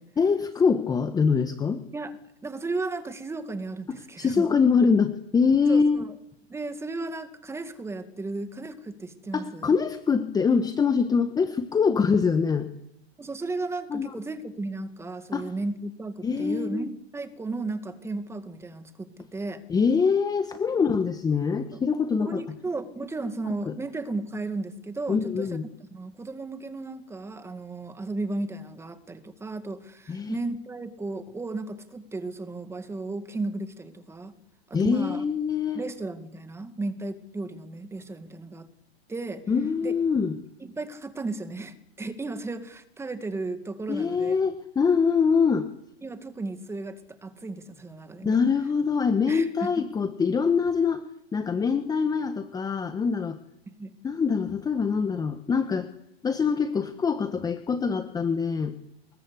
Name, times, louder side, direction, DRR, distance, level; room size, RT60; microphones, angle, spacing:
voice 1, 0.2-1.8 3.9-6.0 9.3-12.7 13.9-14.1 15.3-15.5 16.2-16.9 19.7-22.4 23.7-23.8 25.1-25.7 30.1-30.4 34.7-35.8 39.5-40.4 43.9-45.7 48.2-51.0 51.3-53.4 54.0-55.9 56.2-58.7, left 5 dB, 10° left, 10 dB, 1.2 m, -24 dB
voice 2, 2.4-4.6 5.7-6.1 6.5-9.8 11.9-12.0 13.2-19.6 20.7-20.8 21.7-21.8 22.2-34.4 34.7-35.2 35.7-38.7 39.1-39.4 39.8-39.9 40.6-44.4 46.0-48.4 49.3-49.9 53.7-54.0, right 3 dB, 10° right, 10 dB, 2.2 m, -34 dB
27.5 x 21.5 x 8.5 m, 0.75 s
supercardioid pair, 140°, 30 cm